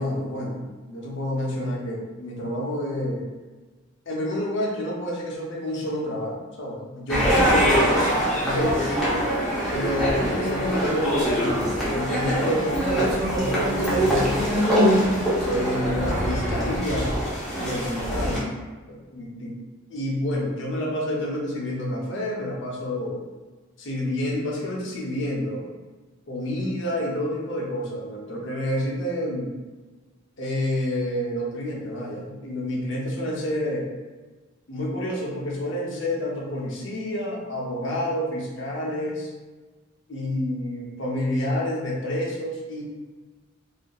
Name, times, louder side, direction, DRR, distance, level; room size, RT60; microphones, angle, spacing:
voice 1, 0.0-3.2 4.1-7.8 8.4-9.0 9.7-14.7 15.4-17.1 17.6-18.4 18.9-19.6 19.9-23.2 23.8-25.7 26.3-29.5 30.4-33.9 34.7-39.3 40.1-42.8, left 1 dB, 60° left, -2 dB, 0.6 m, -29 dB
sound 1, 7.1-18.4, equal, ahead, 0.6 m, -23 dB
2.7 x 2.4 x 2.2 m, 1.3 s
head